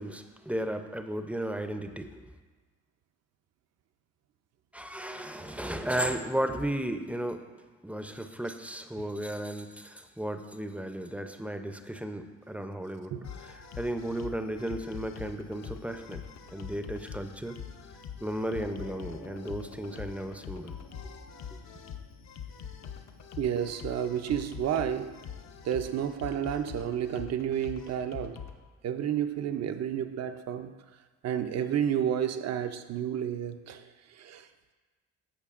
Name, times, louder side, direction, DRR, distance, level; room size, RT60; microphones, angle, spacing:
voice 1, 0.0-2.1 4.7-7.4 7.8-13.1 13.4-16.2 16.5-17.6 18.2-20.7, right 1 dB, 5° right, 7 dB, 0.5 m, -34 dB
sound 1, 13.2-28.6, left 8 dB, 65° left, 0.7 m, -44 dB
sound 2, 18.6-23.8, left 2 dB, 85° left, 1.9 m, -53 dB
voice 2, 23.4-25.2 25.6-28.4 28.8-30.7 31.2-34.5, right 9 dB, 60° right, 9 dB, 0.5 m, -31 dB
13.5 x 5.1 x 2.4 m, 1.3 s
cardioid pair, 90°, 30 cm